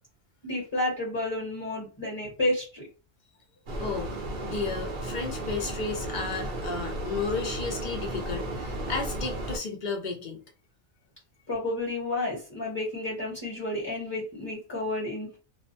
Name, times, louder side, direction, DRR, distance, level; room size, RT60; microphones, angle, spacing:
voice 1, 0.4-2.9 11.5-15.4, left 1 dB, 20° left, -5 dB, 0.9 m, -31 dB
sound 1, 3.7-9.6, right 1 dB, 55° right, 0.6 m, -34 dB
voice 2, 3.8-4.2 4.4-10.4, left 4 dB, 50° left, 2 dB, 0.6 m, -33 dB
2.5 x 2.2 x 2.6 m, 0.34 s
omnidirectional pair, 1.4 m